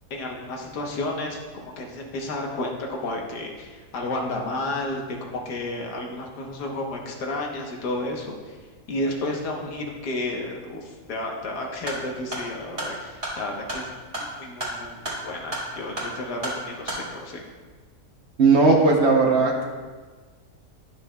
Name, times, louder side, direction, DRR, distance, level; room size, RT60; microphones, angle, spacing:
voice 1, 0.1-8.6 8.9-17.4, left 2 dB, 80° left, 0 dB, 1.6 m, -32 dB
sound 1, 11.8-17.0, right 1 dB, 20° right, 2.0 m, -34 dB
voice 2, 18.4-19.6, right 3 dB, 55° right, 0 dB, 0.9 m, -17 dB
11.5 x 6.0 x 2.2 m, 1.4 s
omnidirectional pair, 1.7 m